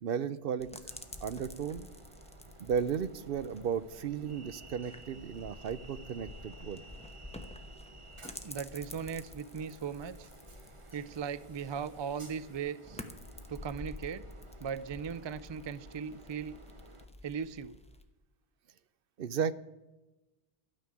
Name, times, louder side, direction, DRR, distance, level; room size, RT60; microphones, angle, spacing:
voice 1, 0.0-0.9 1.2-1.9 2.6-6.8 19.2-19.5, right 7 dB, 65° right, 15 dB, 0.8 m, -34 dB
sound 1, 0.6-18.0, left 1 dB, 5° left, 0.9 m, -50 dB
Train, 0.9-17.1, right 2 dB, 30° right, 1.1 m, -55 dB
voice 2, 8.4-10.3 10.9-13.0 13.5-14.3 14.6-16.6 17.2-17.8, right 7 dB, 45° right, 16 dB, 0.3 m, -38 dB
13.0 x 6.5 x 9.7 m, 1.1 s
omnidirectional pair, 1.0 m